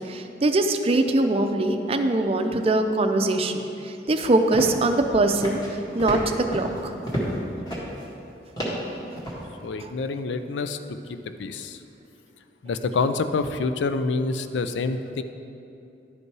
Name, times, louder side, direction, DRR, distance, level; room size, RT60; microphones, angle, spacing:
voice 1, 0.1-5.6 5.9-6.9 9.8-9.9, right 2 dB, 35° right, 6 dB, 0.5 m, -22 dB
sound 1, 4.5-5.0 5.3-5.7 6.0-7.4 7.6-8.0 8.6-9.4, equal, 25° left, 1.6 m, -31 dB
voice 2, 9.6-10.8 11.1-11.8 12.6-15.2, left 4 dB, 90° left, 9 dB, 0.4 m, -27 dB
11.0 x 5.4 x 4.7 m, 2.8 s
head